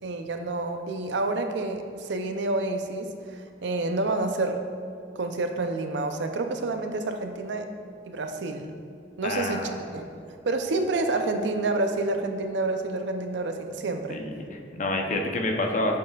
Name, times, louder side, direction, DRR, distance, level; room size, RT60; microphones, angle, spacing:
voice 1, 0.0-4.6 5.2-7.7 8.1-8.7 9.2-10.1 10.4-14.2, right 2 dB, 75° right, 6 dB, 0.5 m, -28 dB
voice 2, 9.2-9.8 14.1-16.0, left 2 dB, 45° left, 2 dB, 0.7 m, -28 dB
8.3 x 6.7 x 2.4 m, 2.5 s
head